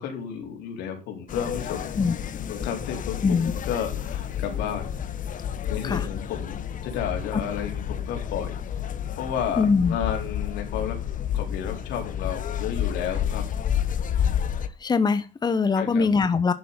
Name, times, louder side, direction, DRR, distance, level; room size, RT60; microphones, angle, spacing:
voice 1, 0.0-1.9 2.5-4.9 5.7-8.6 9.2-11.0 11.3-13.4 15.8-16.1, left 8 dB, 90° left, 4 dB, 4.2 m, -32 dB
sound 1, 1.3-14.7, left 9 dB, 50° left, 1.3 m, -30 dB
voice 2, 3.2-3.5 5.8-6.1 9.6-10.0 14.8-16.5, left 5 dB, 25° left, 12 dB, 1.0 m, -22 dB
11.0 x 7.6 x 6.8 m, 0.31 s
cardioid pair, 110°, 17 cm